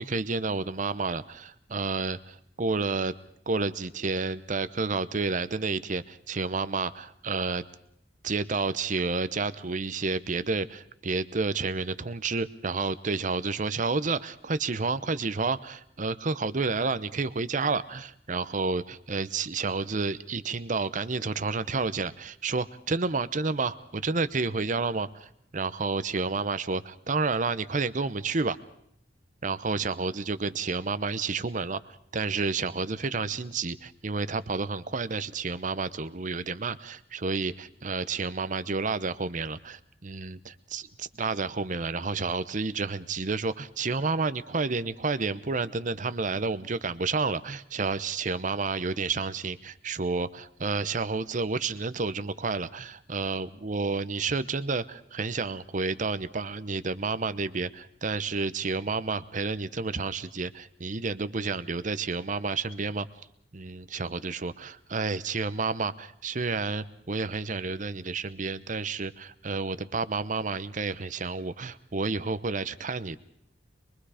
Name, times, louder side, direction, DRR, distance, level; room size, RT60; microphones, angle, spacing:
voice 1, 0.0-3.1 3.5-7.7 8.2-28.6 29.4-63.1 63.5-73.2, right 4 dB, 45° right, 14 dB, 0.8 m, -30 dB
24.0 x 22.5 x 5.0 m, 0.71 s
head